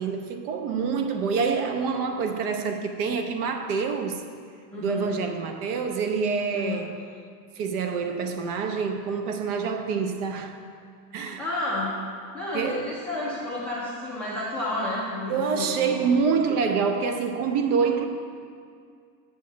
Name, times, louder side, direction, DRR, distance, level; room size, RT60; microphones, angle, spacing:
voice 1, 0.0-4.2 4.8-7.0 7.6-10.6 11.1-11.4 12.5-12.9 15.3-18.1, right 5 dB, 60° right, 1.0 m, -26 dB
voice 2, 4.7-5.1 6.5-6.9 11.4-11.9 12.3-16.1, left 1 dB, 5° left, 0.3 m, -31 dB
7.4 x 5.2 x 7.0 m
supercardioid pair, 150°, 50 cm